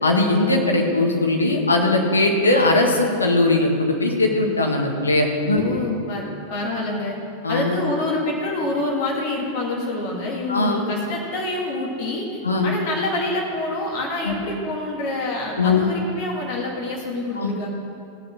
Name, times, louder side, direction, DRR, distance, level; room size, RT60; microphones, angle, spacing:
voice 1, 0.0-5.6 7.4-7.7 10.5-10.8 12.4-12.7 14.3-14.4 15.6-15.9 17.4-17.5, left 2 dB, 75° left, 1 dB, 1.8 m, -19 dB
voice 2, 5.5-6.2 6.5-7.2 7.5-17.7, left 2 dB, 45° left, -1 dB, 2.0 m, -27 dB
16.5 x 6.6 x 6.4 m, 2.5 s
figure-of-eight pair, 90°, 0 cm